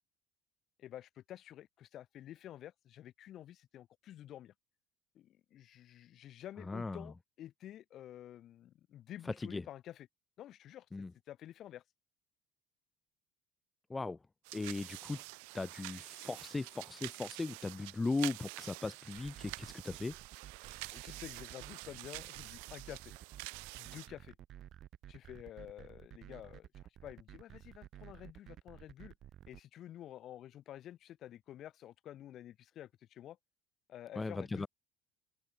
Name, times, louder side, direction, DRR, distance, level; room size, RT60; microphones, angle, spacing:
voice 1, 0.8-4.5 5.1-10.1 10.4-10.9 11.3-11.8 20.9-23.1 23.8-24.4 25.1-26.7 27.0-29.1 29.5-33.4 33.9-34.7, left 12 dB, 50° left, 2.1 m, -50 dB
voice 2, 6.7-7.1 9.4-9.6 10.9-11.1 13.9-14.2 14.5-15.2 15.5-20.2 34.2-34.7, left 3 dB, 15° left, 1.0 m, -38 dB
sound 1, 14.4-24.1, right 35 dB, 85° right, 3.2 m, -47 dB
sound 2, 19.1-29.6, right 11 dB, 50° right, 2.7 m, -53 dB
open air
supercardioid pair, 115°, 0 cm